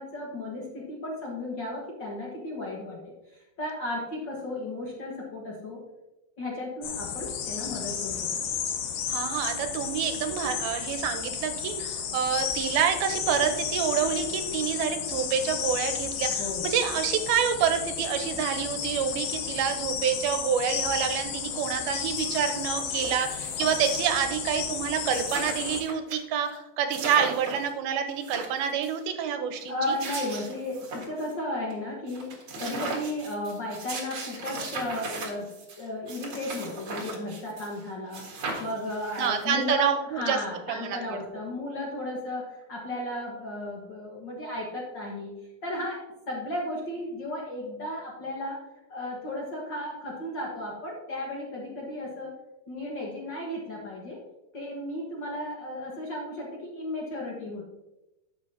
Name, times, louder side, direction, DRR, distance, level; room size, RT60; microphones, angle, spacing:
voice 1, 0.0-5.8 6.4-8.2 16.4-16.7 29.7-45.3 45.6-48.6 48.9-52.3 52.7-54.2 54.5-57.6, left 1 dB, 65° left, -3 dB, 1.1 m, -34 dB
sound 1, 6.8-25.8, left 7 dB, 90° left, 3.0 m, -33 dB
voice 2, 9.1-30.0 39.2-40.4 40.7-41.2, right 7 dB, 85° right, 7 dB, 2.6 m, -28 dB
sound 2, 22.2-22.3 22.5-24.2 24.6-24.7 24.9-26.2 26.5-26.6 26.9-27.7 28.1-29.0 29.7-31.3 31.7-31.8 32.1-37.8 38.1-39.6, right 3 dB, 50° right, 1.8 m, -38 dB
11.0 x 7.6 x 2.8 m, 0.96 s
omnidirectional pair, 4.4 m